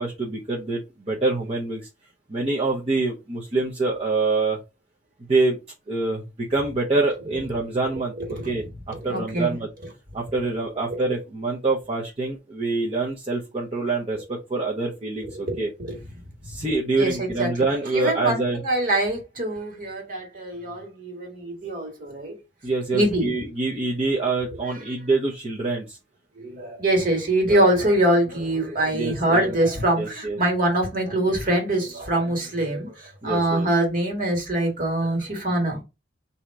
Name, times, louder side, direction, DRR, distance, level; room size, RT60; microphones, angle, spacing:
voice 1, 0.0-1.9 2.3-4.6 5.3-5.6 5.9-8.1 8.4-9.7 10.1-15.7 16.4-18.6 22.6-26.0 27.4-27.6 28.9-29.5 30.0-30.4 33.2-33.7, right 3 dB, 35° right, -3 dB, 0.8 m, -25 dB
voice 2, 8.2-8.5 9.0-9.6 15.3-16.0 16.9-17.6 17.9-22.4 22.9-23.3 26.4-35.8, right 1 dB, 50° right, 2 dB, 1.8 m, -24 dB
3.6 x 2.8 x 4.6 m, 0.26 s
head